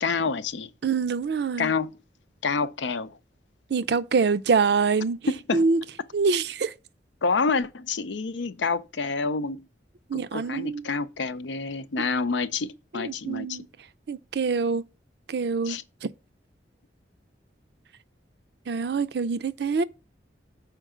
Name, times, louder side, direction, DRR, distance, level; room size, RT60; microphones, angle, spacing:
voice 1, 0.0-0.7 1.6-1.9 2.4-3.2 5.3-5.7 7.2-9.6 10.1-13.6 15.7-15.8, left 4 dB, 85° left, 0.6 m, -28 dB
voice 2, 0.8-1.7 3.7-5.2 5.5-5.8 6.1-6.7 10.1-10.9 12.0-12.1 12.9-13.7 14.1-14.9 15.3-16.1 18.7-19.8, right 5 dB, 65° right, 0.4 m, -25 dB
6.5 x 4.5 x 4.9 m
head